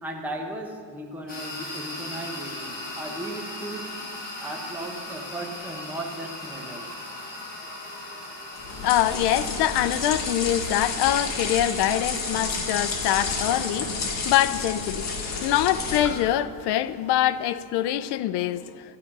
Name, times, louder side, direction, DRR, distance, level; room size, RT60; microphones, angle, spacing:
voice 1, 0.0-4.0 4.4-7.1, right 1 dB, 5° right, 0.9 m, -36 dB
sound 1, 1.3-17.9, left 1 dB, 20° left, 4.3 m, -40 dB
sound 2, 8.5-16.4, left 4 dB, 35° left, 2.0 m, -30 dB
voice 2, 8.8-19.0, left 12 dB, 60° left, 0.6 m, -24 dB
12.5 x 12.5 x 6.0 m
cardioid pair, 170°, 46 cm